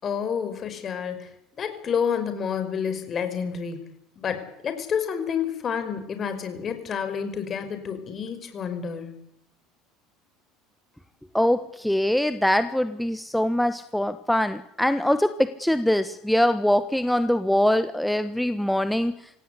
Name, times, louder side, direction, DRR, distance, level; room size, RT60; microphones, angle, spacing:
voice 1, 0.0-1.3 1.6-9.2, left 7 dB, 40° left, 9 dB, 5.7 m, -29 dB
voice 2, 11.3-19.1, left 1 dB, 5° left, 11 dB, 1.4 m, -23 dB
26.5 x 17.5 x 8.5 m, 0.76 s
hypercardioid pair, 70°, 0 cm